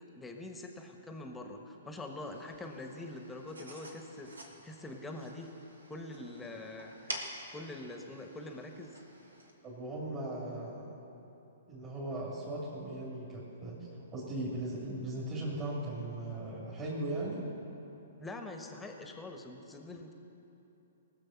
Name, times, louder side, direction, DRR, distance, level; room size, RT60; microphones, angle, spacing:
voice 1, 0.2-5.5 5.9-7.1 7.5-8.9 18.2-20.1, left 2 dB, 10° left, 3 dB, 1.2 m, -44 dB
sound 1, 2.2-9.5, right 1 dB, 85° right, 1.6 m, -48 dB
voice 2, 9.6-10.9 11.7-17.4, right 1 dB, 25° right, -7 dB, 2.7 m, -38 dB
19.0 x 6.9 x 5.8 m, 2.9 s
hypercardioid pair, 125°, 0 cm